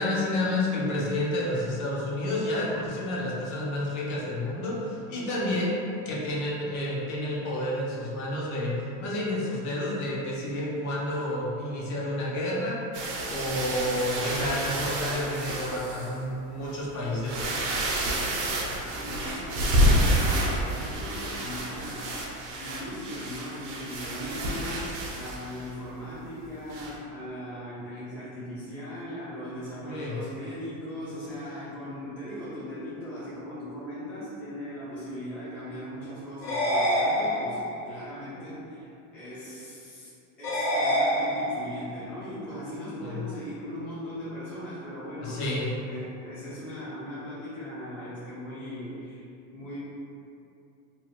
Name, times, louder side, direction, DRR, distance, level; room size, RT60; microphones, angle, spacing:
voice 1, 0.0-5.8 6.1-12.8 13.2-17.4 29.8-30.2 43.0-43.2 45.2-45.7, left 1 dB, 45° left, -4 dB, 0.6 m, -30 dB
sound 1, 12.9-16.1 16.7-16.8 17.2-25.7 26.7-26.9, right 1 dB, 65° right, 0.7 m, -29 dB
voice 2, 18.7-40.1 40.4-49.8, equal, 5° left, -12 dB, 0.3 m, -39 dB
sound 2, 36.4-37.8 40.4-41.8, equal, 80° left, 1.1 m, -26 dB
2.7 x 2.2 x 3.0 m, 2.7 s
cardioid pair, 160°, 40 cm